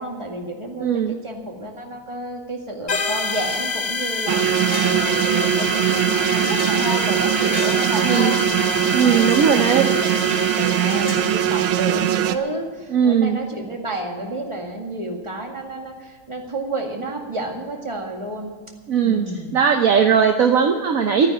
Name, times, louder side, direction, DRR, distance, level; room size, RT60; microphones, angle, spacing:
voice 1, 0.0-18.5 19.0-19.6, right 2 dB, 15° right, 1 dB, 1.8 m, -30 dB
voice 2, 0.8-1.2 8.0-8.3 8.9-9.9 12.9-13.4 18.9-21.3, right 7 dB, 60° right, 5 dB, 0.9 m, -18 dB
sound 1, 2.9-12.3, left 3 dB, 75° left, 0.4 m, -27 dB
sound 2, 3.4-3.5 3.9-4.0 4.7-5.1 5.3-5.4 6.0-7.1 7.5-8.2 8.9-9.9 10.3-11.4, left 2 dB, 45° left, 3.8 m, -37 dB
sound 3, 4.3-12.3, right 11 dB, 75° right, 1.5 m, -21 dB
13.5 x 9.8 x 9.6 m, 1.4 s
omnidirectional pair, 2.3 m